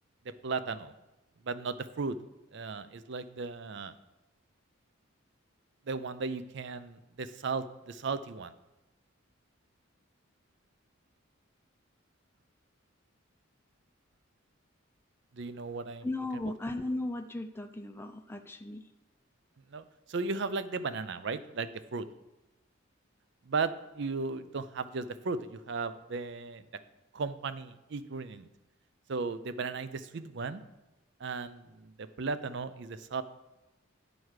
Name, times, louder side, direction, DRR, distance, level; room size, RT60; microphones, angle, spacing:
voice 1, 0.4-0.9 1.4-2.2 2.5-3.9 5.9-8.5 15.3-16.1 16.5-16.6 19.7-22.1 23.5-26.6 27.1-28.5 29.1-30.6 31.2-33.2, right 4 dB, 55° right, 13 dB, 0.5 m, -36 dB
voice 2, 16.0-18.8, left 2 dB, 10° left, 6 dB, 0.4 m, -36 dB
9.1 x 4.6 x 6.4 m, 1.0 s
head